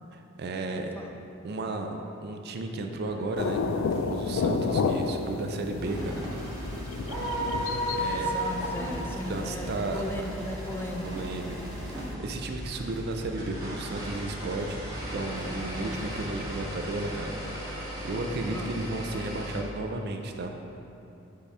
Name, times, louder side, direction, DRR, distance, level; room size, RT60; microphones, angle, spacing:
voice 1, 0.1-0.9 1.4-3.6 3.9-6.2 7.5-7.7 8.0-8.3 9.3-10.1 11.0-11.6 11.9-14.8 15.1-17.3 17.7-20.5, right 2 dB, 55° right, 4 dB, 0.5 m, -34 dB
voice 2, 0.8-1.1 8.3-11.1 18.5-18.7, left 1 dB, 10° left, 2 dB, 0.4 m, -37 dB
sound 1, 2.9-16.9, equal, 70° right, 1.0 m, -45 dB
sound 2, 3.4-12.1, left 4 dB, 90° left, 0.3 m, -32 dB
sound 3, 5.8-19.6, equal, 20° right, 1.5 m, -36 dB
5.5 x 4.2 x 4.9 m, 2.8 s
head